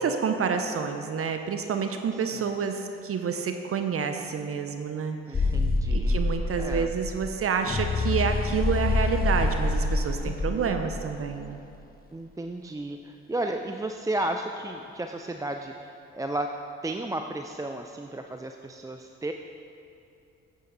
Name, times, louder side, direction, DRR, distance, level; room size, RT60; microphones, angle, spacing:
voice 1, 0.0-5.5 5.9-11.6, right 6 dB, 50° right, 6 dB, 0.7 m, -29 dB
voice 2, 2.1-2.5 5.3-6.9 10.2-10.8 12.1-16.5 16.8-19.3, right 1 dB, 10° right, 4 dB, 0.4 m, -34 dB
sound 1, 5.3-11.4, left 3 dB, 30° left, 1.0 m, -26 dB
8.6 x 8.3 x 4.0 m, 2.7 s
supercardioid pair, 55°, 30 cm